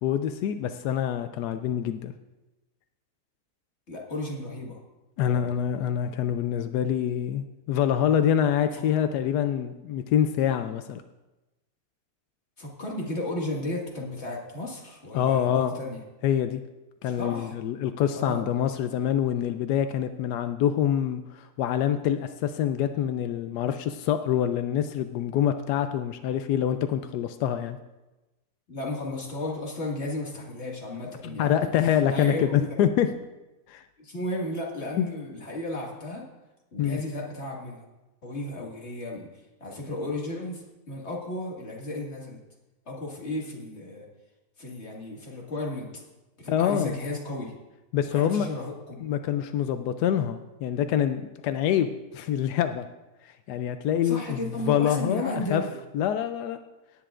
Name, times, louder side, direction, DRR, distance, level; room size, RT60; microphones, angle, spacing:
voice 1, 0.0-2.1 5.2-11.0 15.1-15.7 16.2-16.6 17.0-27.8 31.2-33.1 33.7-33.8 35.0-35.1 36.8-37.0 46.5-47.0 47.9-48.5 49.0-52.8 53.2-54.4 54.6-55.6 55.9-56.6, left 9 dB, 85° left, 9 dB, 1.2 m, -26 dB
voice 2, 3.9-4.8 5.2-5.7 8.7-8.8 12.6-16.0 17.0-17.5 18.1-18.5 28.7-32.7 34.0-36.2 36.7-37.8 38.2-39.3 39.6-42.4 42.9-44.1 44.6-46.0 46.4-47.5 48.1-49.1 54.0-55.7, left 1 dB, 45° left, -2 dB, 2.1 m, -34 dB
18.0 x 9.9 x 2.5 m, 1.1 s
omnidirectional pair, 1.7 m